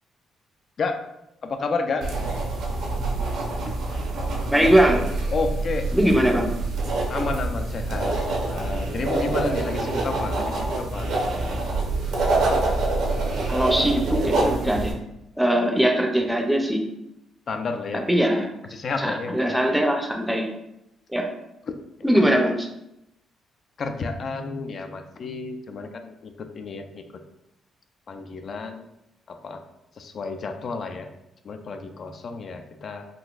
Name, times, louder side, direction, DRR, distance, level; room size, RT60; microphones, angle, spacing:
voice 1, 1.4-2.1 3.6-3.7 4.6-4.7 5.3-5.9 7.1-11.1 17.5-18.0 18.7-19.7 22.1-22.3 23.8-27.0 28.1-28.9 29.3-29.6 30.0-31.1 31.4-33.0, left 4 dB, 50° left, 6 dB, 0.4 m, -31 dB
sound 1, 2.0-14.9, right 2 dB, 80° right, 0.7 m, -26 dB
voice 2, 4.5-5.0 5.9-6.5 13.5-14.9 15.4-16.8 17.9-18.5 19.0-20.5 21.1-21.3 22.0-22.7, right 1 dB, 5° right, 2 dB, 0.5 m, -21 dB
3.7 x 2.5 x 2.4 m, 0.85 s
cardioid pair, 90°, 0 cm